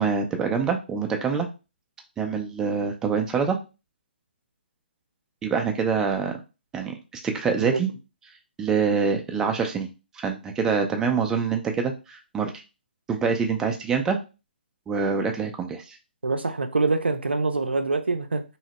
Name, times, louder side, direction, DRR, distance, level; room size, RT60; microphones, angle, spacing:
voice 1, 0.0-1.5 2.2-3.6 5.4-6.3 6.7-7.9 8.6-9.9 10.1-12.5 13.1-14.2 14.9-16.0, right 5 dB, 10° right, 3 dB, 0.3 m, -25 dB
voice 2, 16.2-18.4, right 3 dB, 85° right, 7 dB, 0.4 m, -25 dB
3.0 x 2.0 x 2.8 m, 0.30 s
figure-of-eight pair, 140°, 6 cm